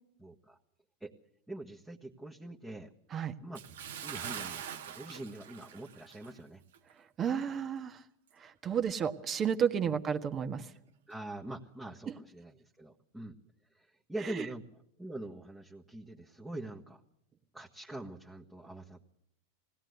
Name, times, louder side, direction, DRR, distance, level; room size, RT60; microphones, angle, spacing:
voice 1, 0.2-0.6 1.0-1.1 1.5-2.9 3.4-3.6 4.0-6.6 9.8-10.0 11.1-13.4 13.7-17.0 17.5-19.1, right 1 dB, 5° right, -2 dB, 1.5 m, -44 dB
Bathtub (filling or washing) / Splash splatter, 3.5-6.4 6.7-6.9 7.5-7.6, right 9 dB, 75° right, 1.4 m, -43 dB
voice 2, 7.2-8.0 8.4-10.7 12.1-12.2 14.2-14.4, right 7 dB, 30° right, 8 dB, 1.5 m, -32 dB
20.0 x 17.0 x 8.1 m, 0.75 s
hypercardioid pair, 100°, 0 cm